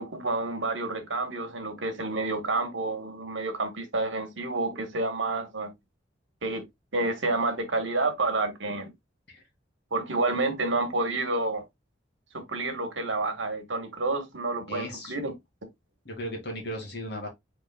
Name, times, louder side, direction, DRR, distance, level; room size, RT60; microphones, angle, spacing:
voice 1, 0.0-5.7 6.4-6.6 6.9-8.9 9.9-11.6 12.3-15.3, right 2 dB, 80° right, 1.4 m, -29 dB
voice 2, 14.7-15.2 16.0-17.3, equal, 60° left, 2.2 m, -36 dB
5.4 x 4.1 x 2.2 m
head